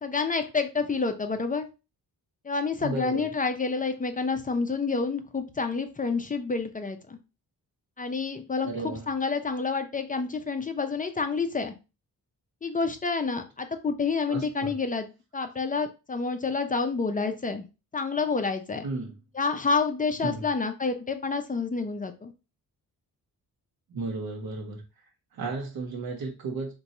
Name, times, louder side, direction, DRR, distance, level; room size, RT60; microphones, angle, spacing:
voice 1, 0.0-1.7 2.4-7.2 8.0-11.7 12.6-15.1 15.3-17.7 17.9-18.9 19.3-22.3, left 4 dB, 25° left, 7 dB, 0.4 m, -28 dB
voice 2, 2.8-3.3 8.6-9.1 14.3-14.7 18.8-19.1 20.2-20.5 23.9-24.8 25.3-26.7, right 3 dB, 70° right, 1 dB, 0.9 m, -33 dB
2.6 x 2.2 x 4.1 m, 0.29 s
cardioid pair, 100°, 37 cm